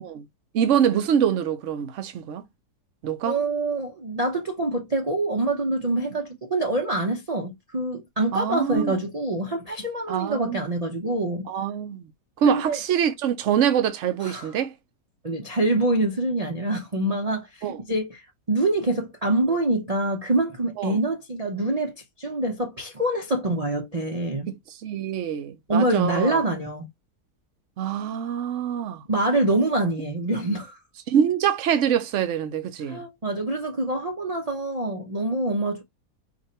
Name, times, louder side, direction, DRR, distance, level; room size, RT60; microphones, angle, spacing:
voice 1, 0.5-2.4 3.0-3.4 8.3-9.0 10.1-10.7 11.5-12.1 12.4-14.7 17.6-17.8 20.8-21.0 24.5-26.4 27.8-29.0 31.1-33.0, right 8 dB, 60° right, 0.9 m, -25 dB
voice 2, 3.3-11.5 12.4-12.8 14.2-14.5 15.2-24.5 25.7-26.8 29.1-30.8 32.9-35.8, right 2 dB, 30° right, 0.7 m, -25 dB
4.7 x 2.6 x 4.2 m
omnidirectional pair, 1.8 m